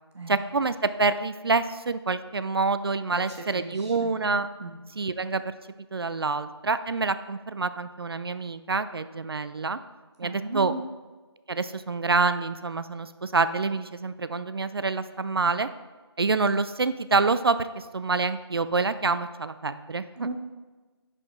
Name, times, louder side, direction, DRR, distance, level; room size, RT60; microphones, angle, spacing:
voice 1, 0.3-4.5 5.0-5.5 5.9-9.8 10.2-10.7 11.5-15.7 16.2-20.3, right 4 dB, 60° right, 13 dB, 0.4 m, -27 dB
voice 2, 3.1-4.1 4.6-4.8 10.2-10.9 20.2-20.3, right 3 dB, 80° right, 2 dB, 1.0 m, -36 dB
10.5 x 4.9 x 3.8 m, 1.3 s
figure-of-eight pair, 175°, 14 cm